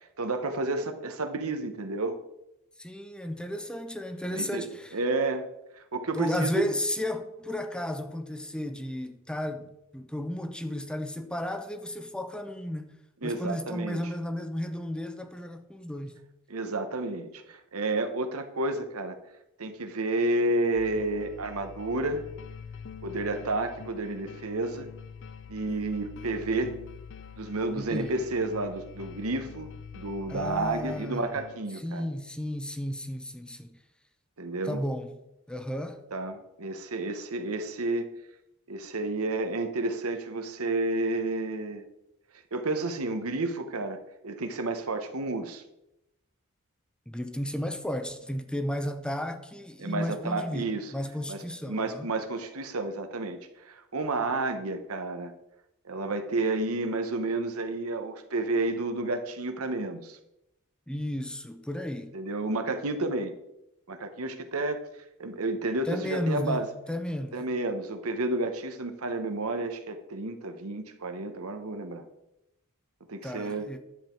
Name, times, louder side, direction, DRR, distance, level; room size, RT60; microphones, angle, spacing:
voice 1, 0.2-2.2 4.3-4.6 4.9-5.5 5.8-6.6 13.2-14.0 16.5-19.2 19.6-22.2 23.0-24.9 25.5-26.8 27.4-32.1 34.4-34.8 36.1-38.1 38.7-41.8 42.5-45.6 49.8-50.9 51.3-51.4 51.7-53.4 53.7-55.3 55.9-60.2 62.1-63.3 63.9-64.8 65.2-66.7 67.3-72.0 73.1-73.7, right 2 dB, 85° right, 1.1 m, -31 dB
voice 2, 2.8-4.9 6.1-13.0 13.2-16.2 27.7-28.1 30.3-31.3 31.8-33.8 34.6-35.1 35.5-36.0 47.1-52.1 60.9-62.1 65.9-67.4 73.2-73.8, left 1 dB, 5° left, 0.7 m, -33 dB
sound 1, 20.8-31.6, left 6 dB, 60° left, 0.5 m, -45 dB
10.5 x 7.2 x 4.5 m
head